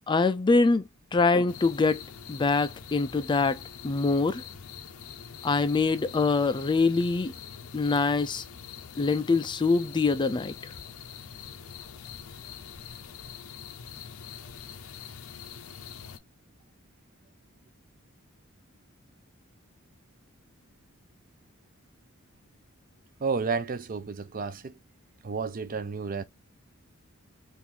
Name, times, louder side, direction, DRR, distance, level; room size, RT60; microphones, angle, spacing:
voice 1, 0.1-0.8 1.1-2.0 2.3-3.6 3.8-4.4 5.4-7.3 7.7-8.4 9.0-10.5, left 3 dB, 20° left, 0.3 m, -24 dB
sound 1, 1.5-16.2, left 7 dB, 85° left, 0.6 m, -44 dB
voice 2, 23.2-24.8 25.2-26.2, right 5 dB, 40° right, 0.5 m, -31 dB
3.7 x 2.5 x 2.8 m
head